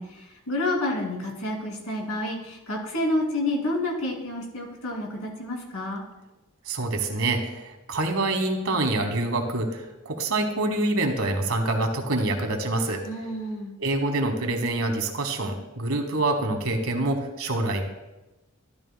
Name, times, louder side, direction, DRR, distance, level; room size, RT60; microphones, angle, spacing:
voice 1, 0.0-6.0 13.1-13.7, left 1 dB, 80° left, 0 dB, 2.5 m, -29 dB
voice 2, 6.7-13.0 13.8-17.8, right 2 dB, 70° right, 5 dB, 1.3 m, -26 dB
13.0 x 12.0 x 2.2 m, 1.0 s
head